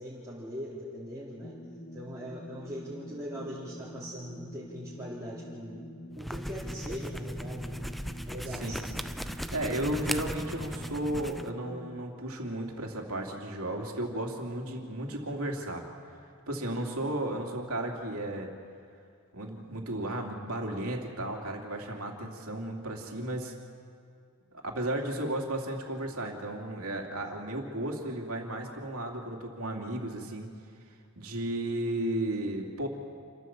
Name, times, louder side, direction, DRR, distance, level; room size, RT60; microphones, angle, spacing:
voice 1, 0.0-1.5 1.9-5.8 6.1-7.8 8.2-8.9, equal, 15° right, -8 dB, 3.1 m, -41 dB
sound 1, 1.4-12.0, equal, 35° left, 1.2 m, -46 dB
sound 2, 6.1-11.5, equal, ahead, 0.5 m, -38 dB
voice 2, 9.2-15.8 16.5-18.5 19.3-23.5 24.6-30.5 31.1-32.9, right 1 dB, 75° right, 1 dB, 2.8 m, -34 dB
28.0 x 14.0 x 7.3 m, 2.4 s
head